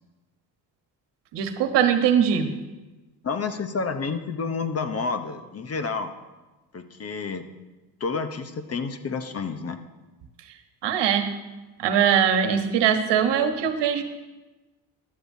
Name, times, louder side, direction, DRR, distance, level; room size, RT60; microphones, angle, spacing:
voice 1, 1.3-2.5 10.8-11.3 11.8-14.0, right 8 dB, 75° right, 6 dB, 1.3 m, -21 dB
voice 2, 3.2-6.1 6.7-7.4 8.0-9.8, left 4 dB, 35° left, 8 dB, 0.9 m, -29 dB
14.0 x 12.0 x 2.8 m, 1.2 s
cardioid pair, 90°, 42 cm